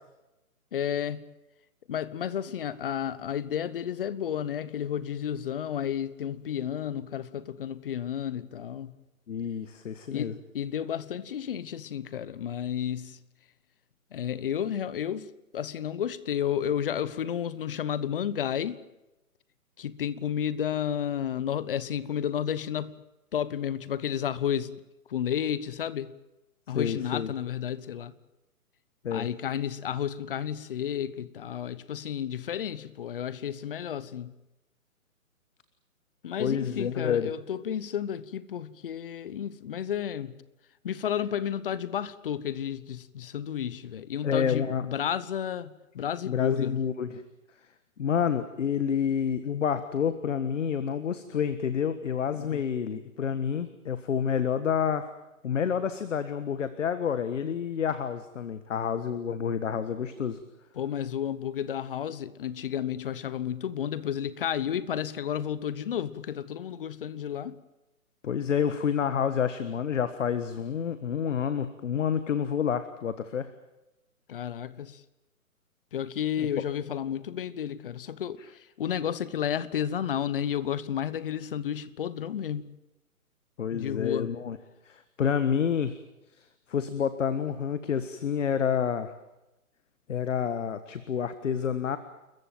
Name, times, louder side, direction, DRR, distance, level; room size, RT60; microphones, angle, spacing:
voice 1, 0.7-1.3 1.9-8.9 10.1-13.2 14.1-18.8 19.8-23.0 23.3-24.8 25.1-26.1 26.7-28.1 29.1-34.3 36.2-40.3 40.8-46.8 52.3-52.6 60.7-67.6 74.3-75.0 75.9-78.4 78.8-82.7 83.7-84.4, left 9 dB, 40° left, 1.1 m, -32 dB
voice 2, 9.3-10.3 26.7-27.3 29.0-29.3 36.4-37.3 44.2-44.8 46.2-47.2 48.0-55.1 55.4-60.4 68.2-73.5 76.4-76.5 83.6-84.6 84.8-85.9 86.4-89.1 90.1-92.0, left 7 dB, 55° left, 1.6 m, -29 dB
29.5 x 14.5 x 9.0 m
hypercardioid pair, 145°, 43 cm